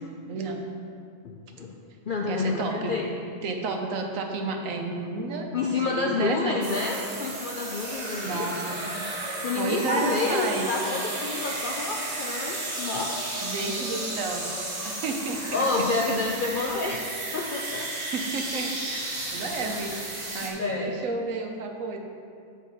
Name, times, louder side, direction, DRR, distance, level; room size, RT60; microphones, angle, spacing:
voice 1, 1.2-1.7 2.1-3.1 5.5-8.5 9.4-13.2 15.5-17.0 17.3-17.9 19.8-19.9 20.6-21.0, left 3 dB, 65° left, 0 dB, 0.5 m, -28 dB
voice 2, 2.3-2.9 3.4-6.6 8.2-9.0 9.5-10.7 13.4-14.5 14.8-15.6 16.6-16.7 18.1-22.0, right 3 dB, 75° right, 3 dB, 1.1 m, -32 dB
sound 1, 6.6-20.5, right 2 dB, 35° right, 1.1 m, -33 dB
8.3 x 4.4 x 5.0 m, 2.4 s
omnidirectional pair, 1.4 m